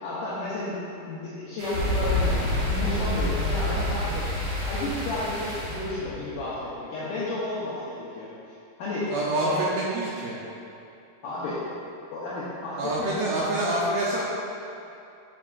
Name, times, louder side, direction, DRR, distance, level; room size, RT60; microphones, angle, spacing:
voice 1, 0.0-2.4 2.7-8.3 8.8-9.1 9.4-9.6 11.2-11.6 12.1-13.1, left 2 dB, 80° left, -9 dB, 1.9 m, -32 dB
sound 1, 1.6-5.9, right 1 dB, 60° right, 2.0 m, -37 dB
sound 2, 1.7-6.5, left 1 dB, 60° left, 2.7 m, -28 dB
voice 2, 9.1-10.4 12.8-14.2, right 1 dB, 80° right, -5 dB, 2.3 m, -26 dB
7.3 x 7.0 x 2.4 m, 2.7 s
omnidirectional pair, 4.8 m